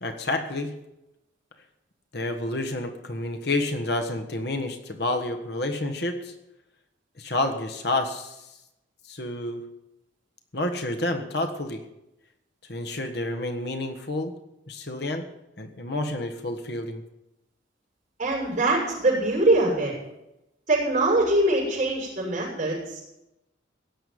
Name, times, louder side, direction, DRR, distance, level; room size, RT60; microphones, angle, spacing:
voice 1, 0.0-0.7 2.1-6.3 7.2-8.5 9.1-9.6 10.5-11.8 12.7-14.3 14.7-15.3 15.6-17.0, left 2 dB, 55° left, 4 dB, 1.5 m, -29 dB
voice 2, 18.2-19.9 20.7-23.0, right 2 dB, 40° right, -4 dB, 6.9 m, -23 dB
17.0 x 6.9 x 9.5 m, 0.91 s
head